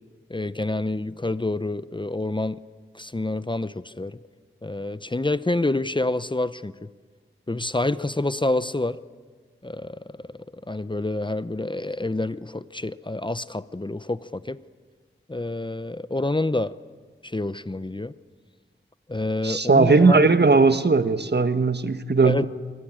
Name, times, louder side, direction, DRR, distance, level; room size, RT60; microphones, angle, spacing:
voice 1, 0.3-2.6 2.9-4.2 4.6-6.9 7.5-9.0 9.6-14.6 15.3-16.7 17.2-18.1 19.1-20.3 22.2-22.5, left 2 dB, 20° left, 0.8 m, -27 dB
voice 2, 19.4-22.5, right 4 dB, 55° right, 1.4 m, -18 dB
25.0 x 25.0 x 9.0 m
cardioid pair, 45°, 21 cm